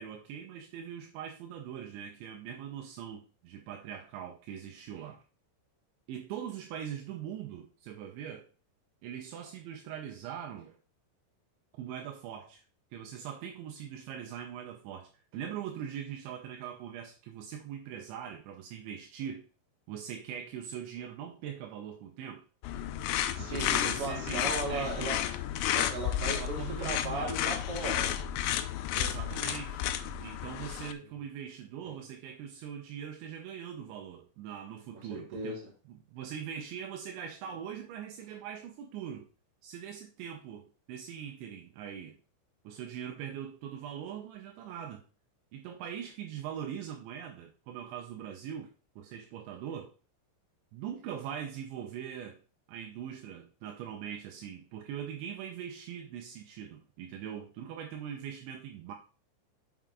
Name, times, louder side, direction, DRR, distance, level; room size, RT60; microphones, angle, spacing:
voice 1, 0.0-5.2 6.1-8.5 9.0-10.8 11.7-12.6 12.9-19.5 19.9-22.4 23.4-25.1 26.3-27.4 28.9-29.9 30.2-35.6 35.9-39.3 39.6-42.2 42.6-45.0 45.5-48.7 49.0-49.9 50.7-52.4 52.7-58.9, right 9 dB, 80° right, 3 dB, 2.9 m, -41 dB
sound 1, 22.6-30.9, left 11 dB, 85° left, 2.5 m, -32 dB
voice 2, 23.4-25.2 25.7-28.1 31.0-31.1 31.8-32.0 35.1-35.7, right 2 dB, 35° right, -3 dB, 3.0 m, -37 dB
7.5 x 6.1 x 3.7 m, 0.35 s
omnidirectional pair, 5.6 m